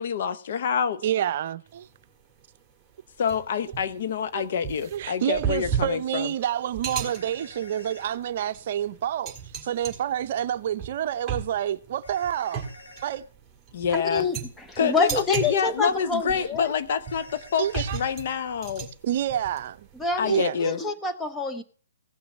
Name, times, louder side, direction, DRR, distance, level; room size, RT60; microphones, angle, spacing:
voice 1, 0.0-1.0 3.2-6.3 13.7-14.3 14.8-18.9 20.2-20.8, left 7 dB, 55° left, 0.8 m, -27 dB
voice 2, 1.0-1.9 4.3-4.5 4.9-9.3 9.6-12.6 13.0-13.2 17.6-18.0 19.0-19.9 20.3-20.6, right 10 dB, 50° right, 0.6 m, -28 dB
sound 1, 1.7-2.0 2.4-2.5 3.3-20.4, right 7 dB, 10° right, 2.1 m, -35 dB
sound 2, 7.0-8.2 12.0-13.2 17.0-18.2, left 1 dB, 80° left, 4.0 m, -48 dB
voice 3, 13.9-16.7 20.0-21.6, left 3 dB, 10° left, 0.9 m, -27 dB
16.0 x 5.9 x 6.4 m
hypercardioid pair, 145°, 0 cm